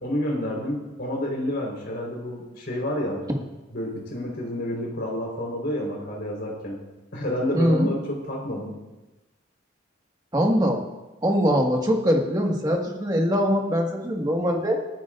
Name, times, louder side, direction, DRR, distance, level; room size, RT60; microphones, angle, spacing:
voice 1, 0.0-3.3 3.7-6.8 7.1-8.8, left 1 dB, 55° left, -1 dB, 4.2 m, -29 dB
voice 2, 7.5-7.9 10.3-10.8 11.2-14.8, equal, 20° right, 1 dB, 1.7 m, -22 dB
28.5 x 9.5 x 2.5 m, 1.1 s
head